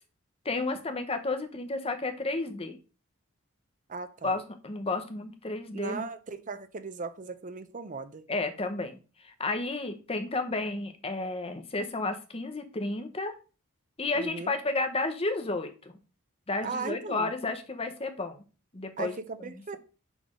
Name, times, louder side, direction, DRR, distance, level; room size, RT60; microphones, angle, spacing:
voice 1, 0.4-2.8 4.2-6.0 8.3-13.3 14.0-16.0 16.5-18.4 18.7-19.1 19.4-19.8, left 3 dB, 25° left, 0.9 m, -32 dB
voice 2, 3.9-4.4 5.7-8.2 14.1-14.6 16.6-17.3 19.0-19.8, right 4 dB, 35° right, 0.6 m, -37 dB
6.3 x 3.5 x 6.1 m
head